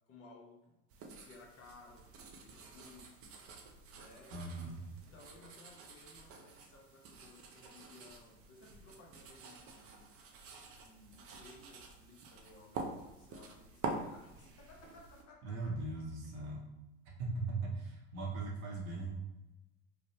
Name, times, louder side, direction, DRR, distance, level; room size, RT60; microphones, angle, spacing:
voice 1, 0.1-0.8 1.2-3.4 3.9-10.1 10.6-15.8, left 3 dB, 45° left, 0 dB, 0.7 m, -59 dB
sound 1, 0.9-15.2, right 3 dB, 40° right, 0.6 m, -48 dB
voice 2, 4.3-4.8 15.4-16.7 17.2-19.1, right 3 dB, 75° right, -2 dB, 0.9 m, -39 dB
3.2 x 2.0 x 2.6 m, 0.98 s
hypercardioid pair, 75°, 34 cm